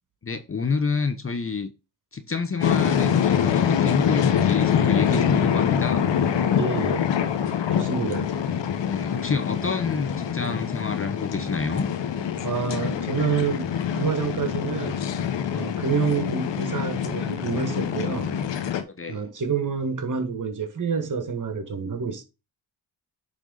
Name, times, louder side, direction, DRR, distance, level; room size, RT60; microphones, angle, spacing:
voice 1, 0.2-1.7 2.1-6.1 7.9-8.3 8.9-11.9 19.0-19.2, left 4 dB, 30° left, 1.0 m, -28 dB
sound 1, 2.6-18.8, left 8 dB, 65° left, 1.2 m, -25 dB
voice 2, 6.5-7.1 7.7-8.4 12.4-15.1 15.5-18.4 19.1-22.2, right 5 dB, 40° right, 1.9 m, -28 dB
9.2 x 3.6 x 4.0 m
supercardioid pair, 50°, 46 cm